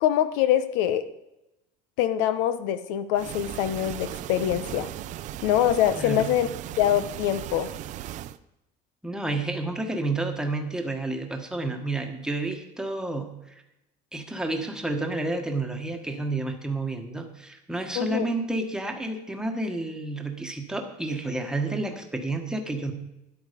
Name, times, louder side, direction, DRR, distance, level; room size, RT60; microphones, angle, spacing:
voice 1, 0.0-1.0 2.0-4.9 5.4-6.5 6.8-7.7 17.9-18.3, left 11 dB, 80° left, 12 dB, 1.1 m, -24 dB
sound 1, 3.1-8.4, right 12 dB, 45° right, 0.5 m, -37 dB
voice 2, 9.0-13.3 14.1-22.9, right 2 dB, 5° right, 3 dB, 1.4 m, -30 dB
13.0 x 10.5 x 5.2 m, 0.91 s
cardioid pair, 160°, 18 cm